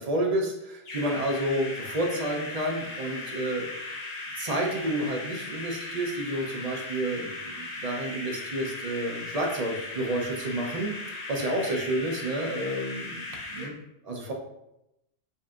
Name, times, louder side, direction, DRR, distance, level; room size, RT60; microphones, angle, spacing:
voice 1, 0.0-3.9 4.4-13.8 14.0-14.3, right 1 dB, 40° right, 1 dB, 0.6 m, -30 dB
sound 1, 0.8-13.7, left 2 dB, 40° left, 0.7 m, -38 dB
5.3 x 2.6 x 2.4 m, 0.86 s
omnidirectional pair, 1.1 m